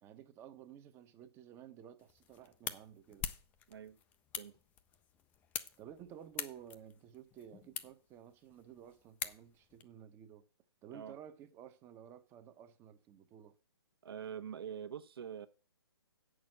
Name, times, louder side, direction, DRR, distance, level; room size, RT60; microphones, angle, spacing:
voice 1, 0.0-3.3 5.8-10.5 10.8-13.6, right 9 dB, 15° right, 0.8 m, -54 dB
sound 1, 2.0-9.8, left 9 dB, 10° left, 0.4 m, -46 dB
voice 2, 14.0-15.5, right 8 dB, 60° right, 1.1 m, -45 dB
8.3 x 6.2 x 7.5 m
hypercardioid pair, 145°, 14 cm